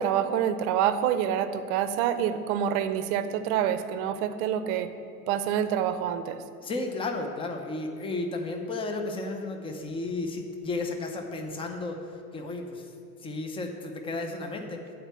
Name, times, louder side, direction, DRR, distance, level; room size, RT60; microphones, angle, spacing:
voice 1, 0.0-4.9 5.3-6.4, right 9 dB, 50° right, 11 dB, 0.7 m, -27 dB
voice 2, 6.6-12.0 12.3-12.9 13.2-14.8, left 2 dB, 10° left, 4 dB, 0.8 m, -33 dB
9.9 x 4.6 x 7.4 m, 2.5 s
hypercardioid pair, 105°, 44 cm